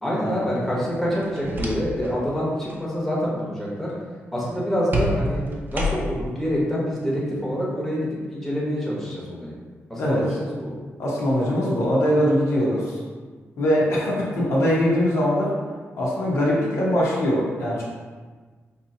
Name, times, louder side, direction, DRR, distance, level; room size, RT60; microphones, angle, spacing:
voice 1, 0.0-3.9 4.3-5.4 5.7-9.5 9.9-10.7, equal, 5° left, -6 dB, 1.0 m, -26 dB
sound 1, 1.2-2.2 2.5-2.8 4.9-6.3, equal, 40° right, 0.6 m, -28 dB
voice 2, 11.0-13.0 13.6-15.5 16.0-17.8, equal, 75° left, -6 dB, 1.1 m, -22 dB
4.6 x 2.8 x 2.7 m, 1.4 s
cardioid pair, 115°, 5 cm